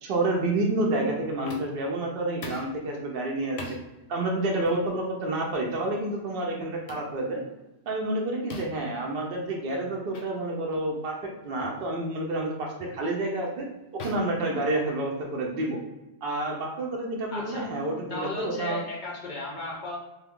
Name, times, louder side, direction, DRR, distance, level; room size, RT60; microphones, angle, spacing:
voice 1, 0.0-3.8 4.1-7.4 7.9-11.2 11.4-13.7 13.9-15.8 16.2-18.8, right 2 dB, 60° right, -1 dB, 0.7 m, -29 dB
sound 1, 1.5-1.9 2.4-2.8 3.6-3.8 4.6-4.8 5.7-5.9 6.9-7.1 8.5-8.9 10.1-10.3 10.7-10.9 11.6-11.9 12.8-13.0 14.0-15.2, left 2 dB, 90° left, 0.9 m, -41 dB
voice 2, 17.3-17.7 18.1-20.0, left 2 dB, 60° left, -2 dB, 0.5 m, -35 dB
2.3 x 2.1 x 3.5 m, 1.0 s
omnidirectional pair, 1.2 m